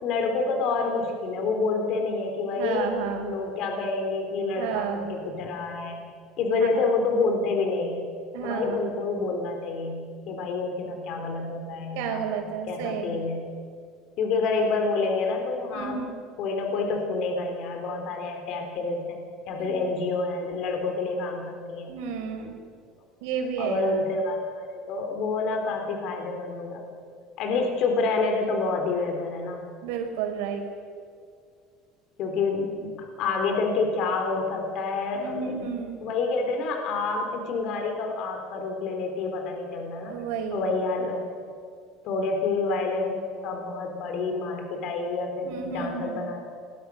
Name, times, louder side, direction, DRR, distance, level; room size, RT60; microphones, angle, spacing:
voice 1, 0.0-6.0 6.4-8.1 8.4-12.3 12.7-13.4 14.2-16.0 16.4-19.2 19.5-21.9 23.6-26.8 27.4-29.6 32.2-40.2 40.5-41.4 42.0-46.5, left 3 dB, 55° left, 4 dB, 3.9 m, -28 dB
voice 2, 2.6-3.3 4.5-5.2 6.7-6.9 8.3-8.8 11.9-13.1 15.7-16.2 19.6-19.8 21.9-22.6 23.2-24.1 29.8-30.7 35.1-36.0 40.1-40.7 45.4-46.3, right 6 dB, 85° right, 3 dB, 5.1 m, -32 dB
27.5 x 21.5 x 6.5 m, 2.3 s
cardioid pair, 130°, 0 cm